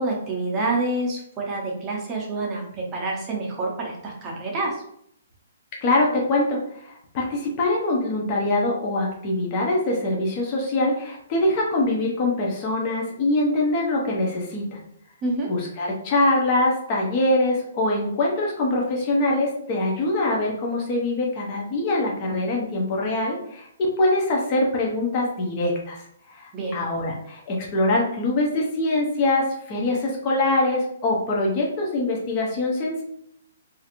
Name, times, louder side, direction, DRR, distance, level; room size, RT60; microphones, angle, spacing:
voice 1, 0.0-4.8 15.2-15.5 26.5-26.8, right 2 dB, 15° right, -2 dB, 0.7 m, -27 dB
voice 2, 5.8-14.8 15.5-33.0, left 2 dB, 25° left, -2 dB, 0.5 m, -23 dB
3.0 x 2.5 x 2.9 m, 0.70 s
hypercardioid pair, 170°, 0 cm